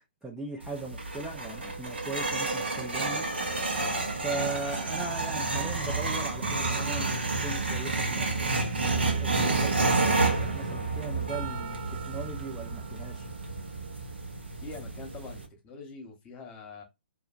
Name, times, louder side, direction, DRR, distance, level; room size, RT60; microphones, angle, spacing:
voice 1, 0.0-3.3 4.2-7.1 7.4-8.6 8.8-13.3, right 3 dB, 5° right, 0.4 m, -39 dB
sound 1, 0.6-15.4, right 3 dB, 85° right, 0.8 m, -30 dB
voice 2, 14.6-16.8, left 4 dB, 25° left, 0.9 m, -44 dB
2.7 x 2.4 x 2.4 m
hypercardioid pair, 130°, 6 cm